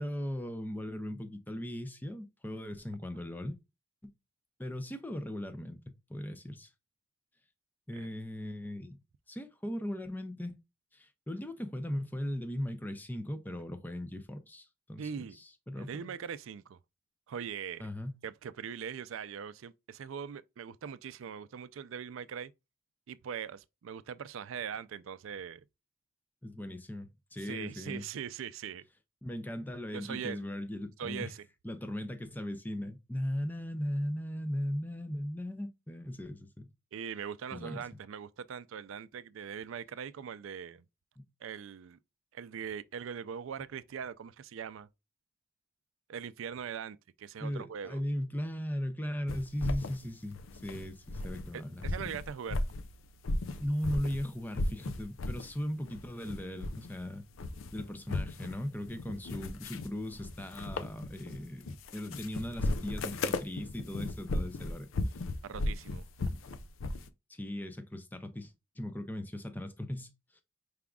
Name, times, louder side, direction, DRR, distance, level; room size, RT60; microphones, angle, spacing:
voice 1, 0.0-3.6 4.0-4.1 4.6-6.7 7.9-9.0 9.3-10.6 10.9-15.9 17.8-18.2 26.4-28.0 29.2-31.3 31.6-36.7 37.5-37.8 41.2-41.3 47.4-51.8 53.6-57.2 57.7-64.9 67.3-70.4, left 1 dB, 10° left, 0.5 m, -38 dB
voice 2, 15.0-15.4 15.8-16.8 17.3-17.9 18.2-22.5 23.1-25.6 27.4-28.8 29.9-30.5 31.0-31.4 36.9-40.8 41.4-42.0 42.3-44.9 46.1-48.0 51.5-52.6 65.4-66.4, right 7 dB, 75° right, 0.4 m, -41 dB
sound 1, 49.3-51.5 51.8-54.2 54.5-55.5 55.8-57.0 57.3-67.1, left 2 dB, 75° left, 0.5 m, -36 dB
4.9 x 3.6 x 2.3 m
head